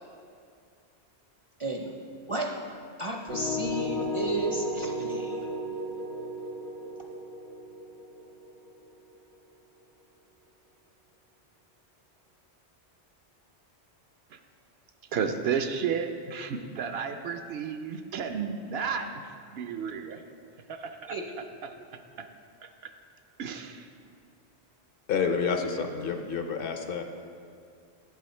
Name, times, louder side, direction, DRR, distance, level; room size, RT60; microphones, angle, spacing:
voice 1, 1.6-2.5 3.0-5.5 21.1-21.2, right 2 dB, 40° right, 1 dB, 0.5 m, -33 dB
sound 1, 3.3-9.1, left 1 dB, 80° left, 1.7 m, -34 dB
voice 2, 15.1-19.1 19.5-20.2 20.7-21.2 21.6-21.8 22.2-22.3 22.6-22.9 23.4-23.9, right 6 dB, 70° right, 7 dB, 0.8 m, -32 dB
voice 3, 25.1-27.0, left 5 dB, 60° left, 5 dB, 0.8 m, -29 dB
8.4 x 7.5 x 4.3 m, 2.3 s
omnidirectional pair, 1.1 m